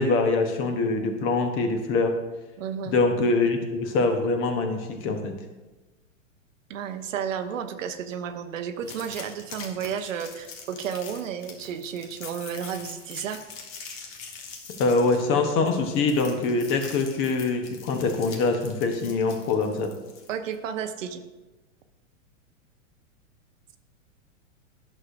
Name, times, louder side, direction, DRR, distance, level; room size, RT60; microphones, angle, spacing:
voice 1, 0.0-2.2 2.9-5.3 14.8-19.9, left 3 dB, 35° left, 6 dB, 1.0 m, -24 dB
voice 2, 2.6-3.0 6.7-13.4 20.3-21.2, right 8 dB, 75° right, 8 dB, 0.8 m, -32 dB
sound 1, 8.8-20.6, left 5 dB, 50° left, 1.5 m, -43 dB
10.5 x 6.5 x 2.6 m, 1.1 s
hypercardioid pair, 130°, 38 cm